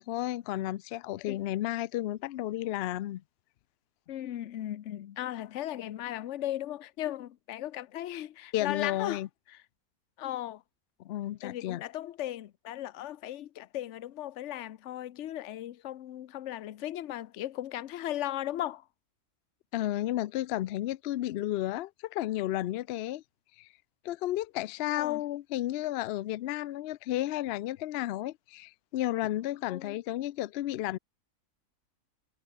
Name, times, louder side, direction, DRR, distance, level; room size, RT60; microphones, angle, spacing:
voice 1, 0.0-3.2 8.5-9.3 11.0-11.8 19.7-23.2 23.6-23.7 24.0-31.0, left 14 dB, 85° left, 0.5 m, -32 dB
voice 2, 4.1-9.2 10.2-10.6 11.4-18.8 25.0-25.2 29.7-29.9, left 13 dB, 60° left, 0.9 m, -37 dB
omnidirectional pair, 1.6 m